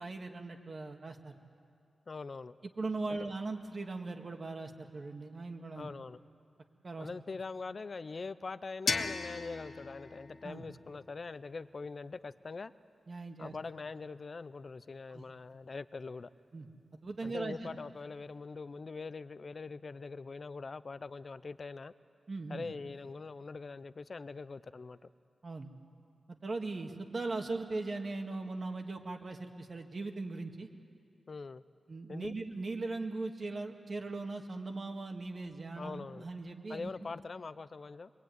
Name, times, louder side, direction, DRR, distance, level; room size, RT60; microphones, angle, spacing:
voice 1, 0.0-1.4 2.6-5.9 6.8-7.1 10.4-10.7 13.1-13.6 15.1-15.3 16.5-16.7 16.9-17.6 22.3-22.7 25.4-25.7 26.3-30.7 31.9-37.1, right 3 dB, 40° right, 4 dB, 1.9 m, -39 dB
voice 2, 2.1-2.5 3.1-3.2 5.8-6.2 7.0-12.7 13.4-16.3 17.2-21.9 22.5-25.1 31.3-31.6 32.1-32.3 35.8-36.2 36.7-38.1, left 4 dB, 40° left, 15 dB, 0.6 m, -43 dB
sound 1, 8.9-11.7, left 4 dB, 70° left, 1.5 m, -38 dB
25.0 x 22.5 x 9.4 m, 2.4 s
wide cardioid pair, 130°, 0 cm